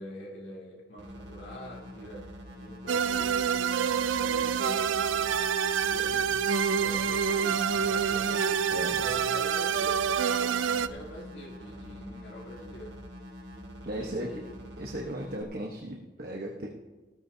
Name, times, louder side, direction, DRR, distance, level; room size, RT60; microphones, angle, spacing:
voice 1, 0.0-3.9 4.2-6.5 6.8-8.6 8.9-13.0 13.9-14.5 14.9-15.0, equal, 75° left, -4 dB, 3.2 m, -45 dB
sound 1, 1.0-15.4, equal, 65° right, 2.1 m, -45 dB
sound 2, 2.9-10.9, right 7 dB, 90° right, 0.4 m, -27 dB
voice 2, 8.7-9.0 13.8-14.3 14.8-16.7, right 1 dB, 50° right, 0 dB, 1.1 m, -36 dB
17.0 x 13.5 x 2.8 m, 1.2 s
head